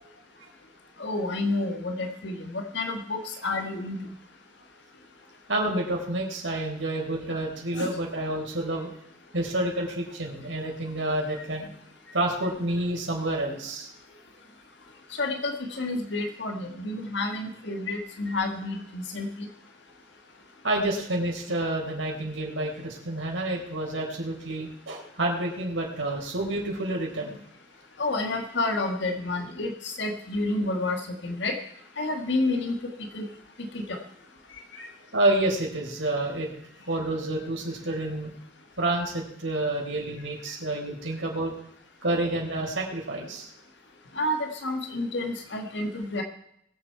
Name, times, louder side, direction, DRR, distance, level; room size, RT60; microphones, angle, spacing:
voice 1, 1.0-4.1 7.7-8.0 11.3-11.4 15.2-19.5 28.0-31.0 31.2-31.6 32.0-33.3 33.7-34.0 34.8-34.9 44.1-46.2, left 2 dB, 65° left, 4 dB, 1.4 m, -30 dB
voice 2, 5.5-9.0 9.3-11.7 12.1-13.9 20.6-27.4 35.1-36.5 36.9-38.3 38.8-41.5 42.0-43.5, right 1 dB, 75° right, 0 dB, 4.1 m, -29 dB
21.5 x 7.6 x 4.6 m, 0.74 s
head